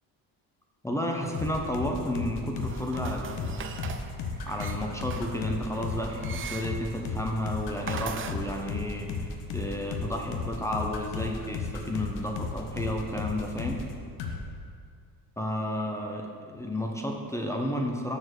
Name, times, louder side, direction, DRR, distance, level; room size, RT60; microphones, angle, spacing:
voice 1, 0.8-3.7 4.5-13.8 15.4-18.2, left 1 dB, 5° left, 1 dB, 0.7 m, -32 dB
sound 1, 1.3-13.9 14.2-14.4, left 4 dB, 85° left, 1.0 m, -34 dB
sound 2, 2.6-8.4, right 6 dB, 35° right, 0.5 m, -41 dB
6.5 x 4.5 x 6.4 m, 2.2 s
cardioid pair, 105°, 39 cm